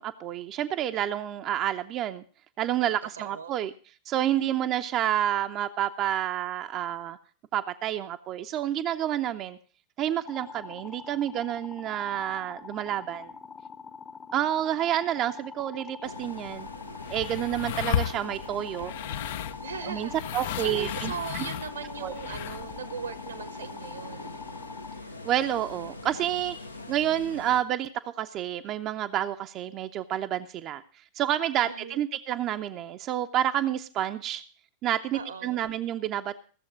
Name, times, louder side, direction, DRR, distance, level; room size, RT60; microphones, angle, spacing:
voice 1, 0.0-2.2 2.6-3.7 4.1-7.2 7.5-9.6 10.0-13.3 14.3-16.7 17.1-18.9 19.8-21.1 22.0-22.1 25.2-26.6 26.9-34.4 34.8-36.4, right 11 dB, 35° right, 0.6 m, -29 dB
voice 2, 2.8-3.6 17.3-17.9 19.6-20.2 20.6-24.3 31.6-32.0 35.1-35.6, right 6 dB, 70° right, 1.1 m, -40 dB
sound 1, 10.3-25.0, left 5 dB, 20° left, 0.8 m, -45 dB
sound 2, 16.0-27.6, left 2 dB, 80° left, 0.9 m, -43 dB
sound 3, 16.5-22.8, left 10 dB, 55° left, 0.5 m, -34 dB
15.5 x 7.2 x 6.3 m
figure-of-eight pair, 90°, 0 cm